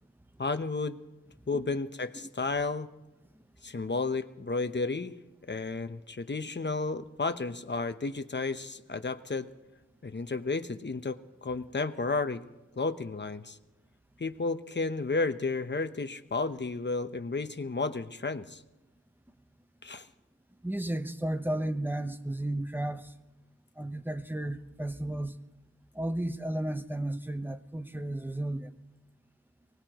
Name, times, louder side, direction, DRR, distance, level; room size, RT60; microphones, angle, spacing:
voice 1, 0.4-1.0 1.5-2.9 3.6-5.2 5.5-9.5 10.0-12.4 12.8-13.6 14.2-18.6 19.8-20.1, left 3 dB, 35° left, 10 dB, 0.9 m, -32 dB
voice 2, 20.6-23.1 23.8-25.3 25.9-28.7, right 1 dB, 5° right, 10 dB, 1.0 m, -33 dB
24.0 x 19.0 x 3.1 m, 1.0 s
cardioid pair, 45°, 30 cm